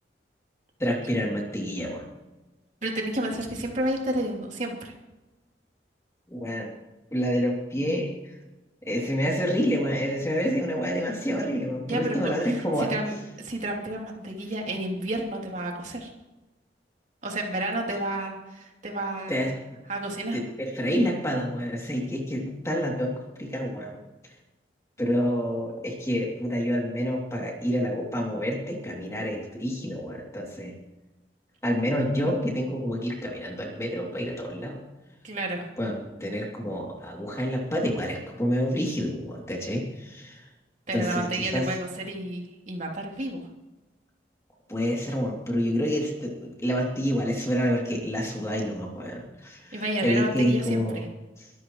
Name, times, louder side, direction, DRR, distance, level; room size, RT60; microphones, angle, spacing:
voice 1, 0.8-2.0 6.3-6.7 7.1-8.1 8.8-12.9 19.3-19.5 20.3-23.1 23.4-24.0 25.0-30.7 31.6-34.8 35.8-40.4 40.9-41.6 44.7-51.0, equal, 15° left, -1 dB, 2.9 m, -28 dB
voice 2, 2.8-4.9 11.9-16.1 17.2-19.4 19.9-20.4 35.2-35.7 40.9-43.4 49.7-51.0, right 1 dB, 45° right, 0 dB, 3.1 m, -31 dB
23.5 x 13.5 x 3.2 m, 1.1 s
head